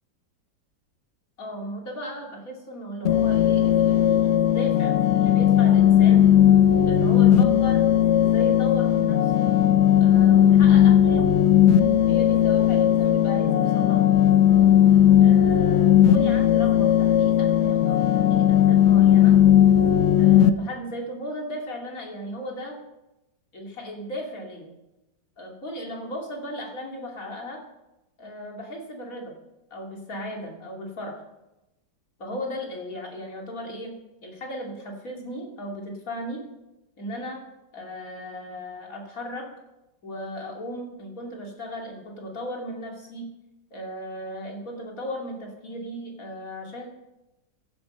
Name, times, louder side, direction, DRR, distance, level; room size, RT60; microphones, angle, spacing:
voice 1, 1.4-6.3 6.9-7.9 8.1-9.5 10.0-11.4 11.7-14.0 15.2-19.4 20.1-22.8 23.5-24.7 25.4-27.6 28.2-29.3 29.7-31.2 32.2-34.0 34.2-36.4 37.0-37.4 37.7-39.5 40.0-43.3 43.7-46.9, equal, 50° left, 0 dB, 3.2 m, -36 dB
sound 1, 3.0-20.5, left 10 dB, 65° left, 0.6 m, -17 dB
16.0 x 10.5 x 5.5 m, 0.94 s
omnidirectional pair, 2.0 m